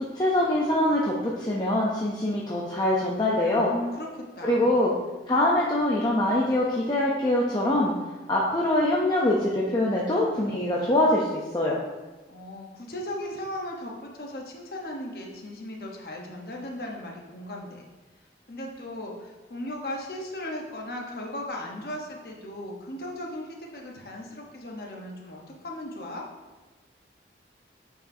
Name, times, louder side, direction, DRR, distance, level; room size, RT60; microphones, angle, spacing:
voice 1, 0.1-3.7 4.4-4.9 5.3-7.9 8.3-11.8, left 1 dB, 25° left, -4 dB, 0.6 m, -24 dB
voice 2, 3.5-4.7 12.3-17.8 18.5-26.3, left 1 dB, 55° left, 0 dB, 1.0 m, -37 dB
8.8 x 4.8 x 2.7 m, 1.2 s
head